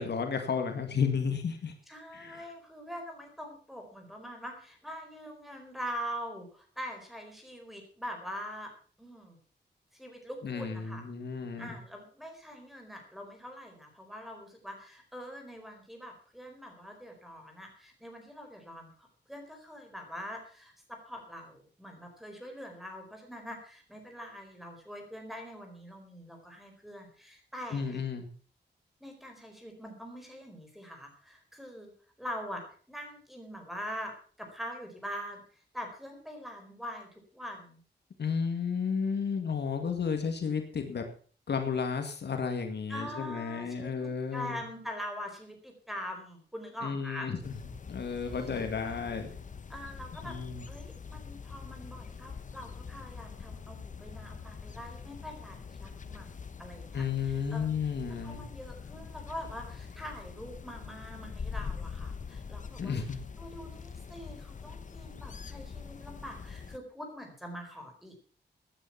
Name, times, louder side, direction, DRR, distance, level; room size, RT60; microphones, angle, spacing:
voice 1, 0.0-1.7 2.1-2.4 10.4-11.8 27.7-28.3 38.2-41.1 41.5-44.6 46.8-47.5 47.9-49.3 50.2-50.7 56.9-58.4 62.8-63.2, left 6 dB, 65° left, 6 dB, 2.1 m, -32 dB
voice 2, 1.9-8.7 9.0-9.4 9.9-11.0 11.6-18.9 19.3-28.0 29.0-31.9 32.2-37.8 42.9-47.3 48.3-48.7 49.7-50.3 50.7-57.7 58.2-62.9 63.4-68.1, equal, ahead, 3 dB, 4.4 m, -43 dB
sound 1, 47.4-66.8, left 5 dB, 45° left, 1.0 m, -44 dB
16.5 x 9.9 x 5.8 m, 0.42 s
wide cardioid pair, 165°, 19 cm